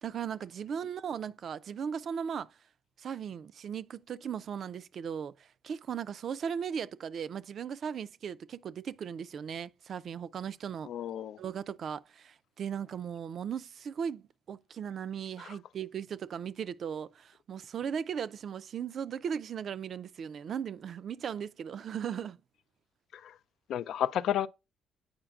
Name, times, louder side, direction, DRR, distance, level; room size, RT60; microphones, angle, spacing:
voice 1, 0.0-2.5 3.0-10.9 11.4-22.4, right 7 dB, 60° right, 0.4 m, -37 dB
voice 2, 10.9-11.4 23.1-23.4 23.7-24.5, left 10 dB, 75° left, 0.4 m, -31 dB
8.8 x 4.9 x 2.3 m
cardioid pair, 90°, 0 cm